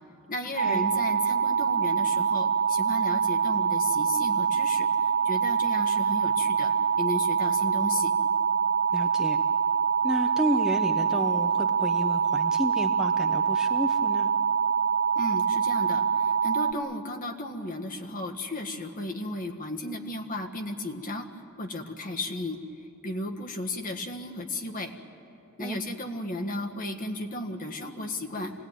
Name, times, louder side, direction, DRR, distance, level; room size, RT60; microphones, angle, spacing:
voice 1, 0.3-4.9 5.2-6.7 7.0-8.1 15.1-21.3 21.6-22.6 23.0-24.9 25.6-28.5, left 1 dB, 40° left, 3 dB, 1.7 m, -34 dB
sound 1, 0.6-16.7, right 6 dB, 50° right, 0.6 m, -25 dB
voice 2, 8.9-9.4 10.0-14.3 25.6-25.8, equal, 5° right, 4 dB, 0.7 m, -31 dB
26.5 x 17.5 x 9.2 m, 2.8 s
head